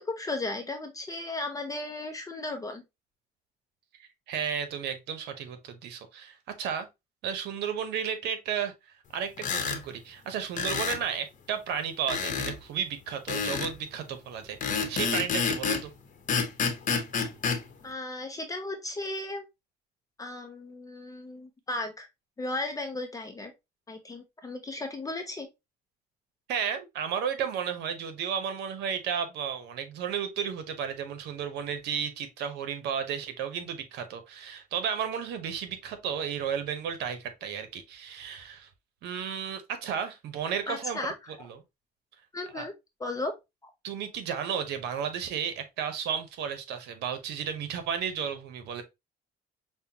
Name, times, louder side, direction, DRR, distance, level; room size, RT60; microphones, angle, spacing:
voice 1, 0.0-2.8 17.8-19.5 20.2-22.1 22.4-23.5 23.9-25.5 40.7-41.3 42.3-42.7 43.0-43.4, left 2 dB, 20° left, 0.5 m, -35 dB
voice 2, 4.0-6.9 7.2-8.7 9.1-15.9 26.5-38.7 39.0-41.0 41.4-41.6 42.5-42.6 43.8-48.8, right 7 dB, 80° right, 0.8 m, -33 dB
sound 1, 9.4-9.8 10.6-11.0 12.1-12.6 13.3-13.7 14.6-15.9 16.3-17.6, left 6 dB, 50° left, 0.9 m, -28 dB
5.5 x 2.2 x 2.7 m
cardioid pair, 110°, 17 cm